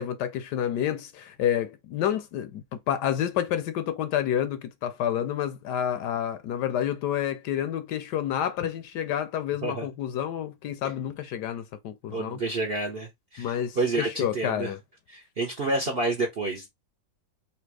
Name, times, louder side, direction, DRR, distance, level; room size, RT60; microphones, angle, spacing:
voice 1, 0.0-12.4 13.4-14.8, left 10 dB, 75° left, 1.1 m, -29 dB
voice 2, 12.1-14.7 15.1-16.7, right 2 dB, 50° right, 0.7 m, -29 dB
3.4 x 2.8 x 4.6 m
omnidirectional pair, 2.0 m